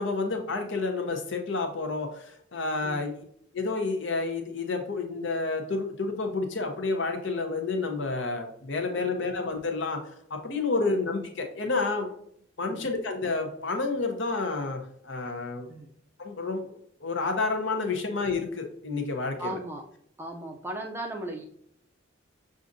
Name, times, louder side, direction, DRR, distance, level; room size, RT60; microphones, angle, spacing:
voice 1, 0.0-3.2 3.5-10.0 10.3-12.1 12.6-15.7 16.2-19.6, left 3 dB, 65° left, 4 dB, 0.8 m, -30 dB
voice 2, 2.8-3.1 9.0-9.3 10.8-11.0 12.6-12.9 15.7-15.9 19.4-19.8 20.2-21.4, right 1 dB, 10° right, 2 dB, 0.4 m, -37 dB
6.2 x 2.5 x 2.6 m, 0.68 s
head